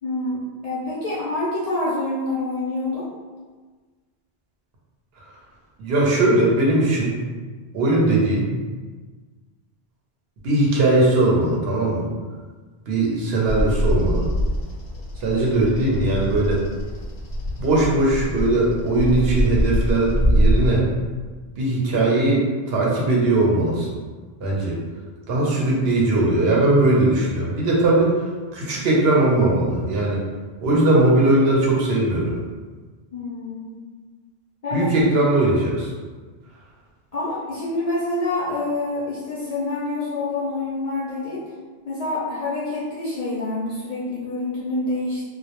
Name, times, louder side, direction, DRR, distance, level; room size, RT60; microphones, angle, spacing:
voice 1, 0.0-3.1 21.9-22.1 33.1-33.8 34.6-34.9 37.1-41.4 41.8-45.3, left 2 dB, 55° left, -9 dB, 0.4 m, -27 dB
voice 2, 5.8-7.1 7.7-8.5 10.4-12.1 12.9-14.3 15.2-16.6 17.6-20.8 21.6-23.9 24.4-24.8 25.3-28.1 28.5-30.2 30.6-32.3 34.7-35.9, right 2 dB, 70° right, -4 dB, 0.8 m, -19 dB
Bird vocalization bird call bird song, 13.5-20.7, equal, 80° left, 0.8 m, -24 dB
2.1 x 2.0 x 2.8 m, 1.4 s
omnidirectional pair, 1.1 m